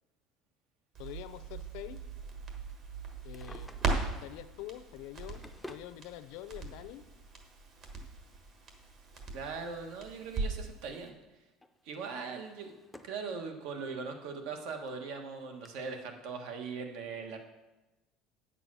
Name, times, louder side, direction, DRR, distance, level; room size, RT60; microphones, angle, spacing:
voice 1, 1.0-2.0 3.2-3.7 4.2-5.4 5.7-7.0, left 14 dB, 70° left, 14 dB, 0.6 m, -45 dB
Crackle, 1.0-10.8 11.1-11.2, right 3 dB, 40° right, 1.4 m, -39 dB
Drawer open or close, 3.1-4.2 5.0-5.9 7.0-7.1 8.9-10.4 10.7-11.1 11.6-13.3 13.7-13.8 14.5-14.6 14.9-15.0 15.6-15.7, left 1 dB, 5° left, 0.5 m, -53 dB
voice 2, 9.3-11.1 11.8-12.7 13.0-17.4, right 5 dB, 70° right, 4 dB, 1.5 m, -40 dB
8.9 x 6.8 x 6.1 m, 1.0 s
cardioid pair, 165°, 0 cm